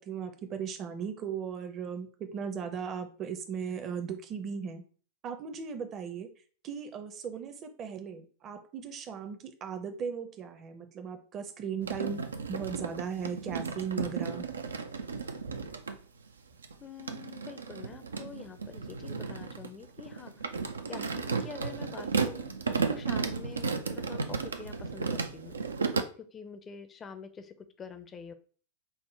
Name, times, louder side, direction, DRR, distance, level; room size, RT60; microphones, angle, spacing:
voice 1, 0.0-4.8 5.2-6.3 6.6-14.5, right 6 dB, 30° right, 7 dB, 0.6 m, -37 dB
sound 1, 11.8-16.0 16.6-26.0, right 5 dB, 70° right, 0.4 m, -34 dB
voice 2, 16.8-20.5 20.9-22.5 22.9-25.6 26.2-28.3, left 6 dB, 20° left, 9 dB, 0.5 m, -46 dB
5.5 x 2.1 x 3.2 m, 0.42 s
figure-of-eight pair, 90°, 0 cm